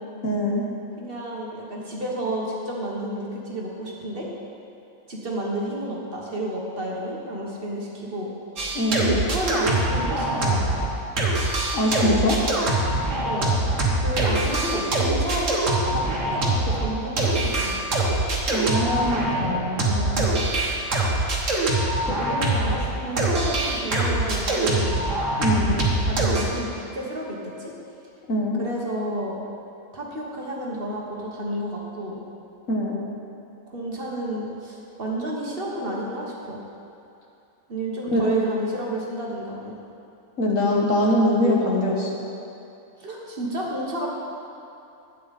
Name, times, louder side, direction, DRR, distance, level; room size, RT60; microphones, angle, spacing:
voice 1, 0.2-0.7 8.7-9.2 11.7-12.4 18.5-20.3 22.1-22.5 25.4-25.8 28.3-28.6 32.7-32.9 38.1-38.2 40.4-42.1, left 1 dB, 65° left, -2 dB, 1.8 m, -23 dB
voice 2, 1.0-4.3 5.1-8.3 8.6-10.6 13.2-13.5 14.0-17.8 18.5-19.3 22.2-25.0 26.0-27.7 28.6-29.4 29.9-32.2 33.7-36.6 37.7-39.8 43.0-44.1, right 1 dB, 40° right, -3 dB, 1.5 m, -31 dB
sound 1, 8.6-10.9 11.2-22.8 23.2-26.4, right 2 dB, 60° right, 1.7 m, -23 dB
12.0 x 8.5 x 4.2 m, 2.7 s
omnidirectional pair, 1.5 m